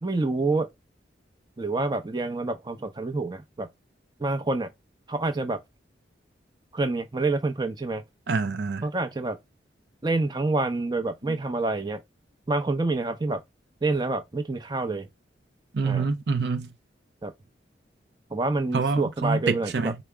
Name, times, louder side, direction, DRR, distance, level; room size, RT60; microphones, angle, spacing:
voice 1, 0.0-0.7 1.6-3.7 4.2-4.7 5.1-5.6 6.7-8.0 8.8-9.4 10.0-12.0 12.5-13.4 13.8-15.1 15.8-16.1 17.2-17.3 18.3-19.9, right 2 dB, 25° right, 0.6 m, -27 dB
voice 2, 8.3-8.9 15.7-16.7 18.7-20.0, right 4 dB, 65° right, 0.5 m, -26 dB
4.7 x 2.1 x 3.3 m
head